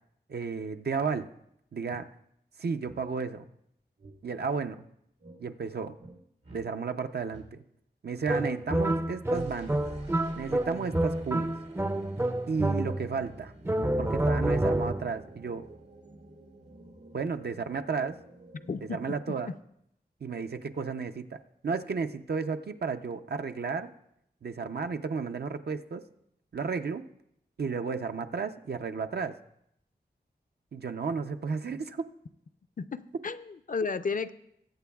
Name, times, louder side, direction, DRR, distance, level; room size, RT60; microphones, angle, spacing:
voice 1, 0.3-1.3 1.7-2.1 2.6-3.4 4.2-4.8 5.4-6.0 6.5-7.6 8.0-9.8 10.4-11.5 12.5-13.5 14.0-15.7 17.1-18.2 18.8-19.5 20.2-21.4 21.6-23.9 24.4-26.0 26.5-27.0 27.6-29.4 30.7-32.1, right 5 dB, 70° right, 7 dB, 0.5 m, -33 dB
sound 1, 1.4-1.5 1.8-2.0 2.8-3.0 4.0-4.5 5.2-5.4 6.0-6.2 6.4-6.6 7.3-7.5 9.3-19.1, right 2 dB, 90° right, 1.9 m, -51 dB
sound 2, 8.3-13.2 13.6-15.2, right 1 dB, 15° right, 0.4 m, -29 dB
voice 2, 18.7-19.0 32.8-34.3, left 5 dB, 50° left, 12 dB, 0.4 m, -33 dB
21.0 x 8.4 x 2.3 m, 0.76 s
wide cardioid pair, 75°, 17 cm